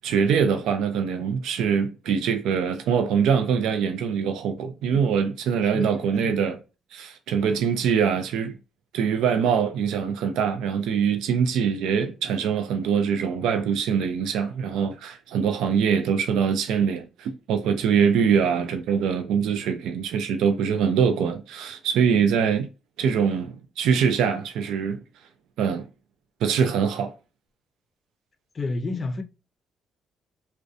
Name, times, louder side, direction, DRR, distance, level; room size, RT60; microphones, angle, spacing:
voice 1, 0.0-6.6 6.9-8.6 8.9-22.7 23.0-25.0 25.6-25.9 26.4-27.1, right 7 dB, 85° right, 0.4 m, -23 dB
voice 2, 5.7-6.5 28.5-29.2, left 3 dB, 35° left, 0.5 m, -31 dB
2.6 x 2.1 x 2.3 m
cardioid pair, 90°, 0 cm